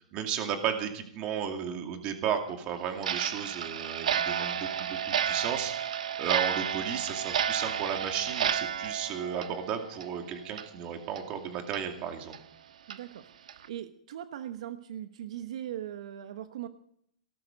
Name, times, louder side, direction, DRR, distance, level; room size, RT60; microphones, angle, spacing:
voice 1, 0.1-12.3, right 8 dB, 25° right, 5 dB, 2.4 m, -34 dB
Clock, 3.0-10.2 10.5-10.7 11.2-11.3 11.7-11.8 12.3-12.4 12.9-13.0 13.5-13.7, right 8 dB, 80° right, 1.4 m, -31 dB
voice 2, 12.9-16.7, right 11 dB, 60° right, 9 dB, 1.1 m, -40 dB
18.0 x 13.0 x 5.2 m, 0.68 s
hypercardioid pair, 165°, 4 cm